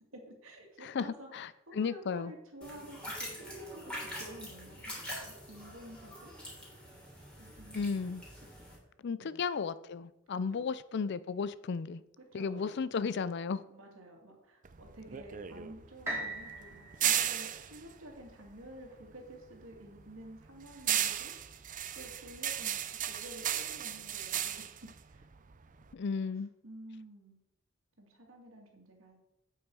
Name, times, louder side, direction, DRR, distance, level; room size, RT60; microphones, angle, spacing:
voice 1, 0.1-6.3 7.4-8.0 8.6-8.7 9.2-9.5 10.3-10.7 12.2-12.8 13.6-21.3 21.9-25.3 26.2-26.3 26.6-27.4 28.0-29.2, right 1 dB, 70° right, 2.5 m, -51 dB
voice 2, 1.3-2.3 7.7-8.2 9.0-12.0 12.3-13.6 25.9-26.5, left 5 dB, 55° left, 0.4 m, -34 dB
sound 1, 2.6-8.8, equal, 5° left, 3.2 m, -45 dB
sound 2, 14.6-19.2 19.5-25.9, right 10 dB, 40° right, 0.5 m, -35 dB
sound 3, 16.1-20.0 20.6-20.7, right 1 dB, 10° right, 2.7 m, -43 dB
8.7 x 8.2 x 4.7 m
head